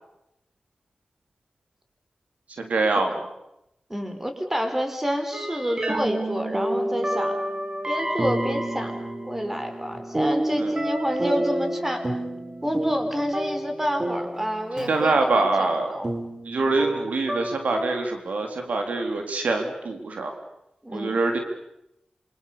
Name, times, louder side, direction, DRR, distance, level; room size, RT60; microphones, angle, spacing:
voice 1, 2.6-3.3 10.6-10.7 14.9-15.9 16.5-20.3 20.9-21.4, right 3 dB, 90° right, 4 dB, 3.9 m, -24 dB
voice 2, 3.9-7.4 7.9-12.1 12.6-16.1 20.8-21.2, equal, 15° right, 6 dB, 4.8 m, -28 dB
sound 1, 5.3-18.0, right 1 dB, 35° right, 3.6 m, -30 dB
27.5 x 25.0 x 7.0 m, 0.85 s
wide cardioid pair, 70°, 2 cm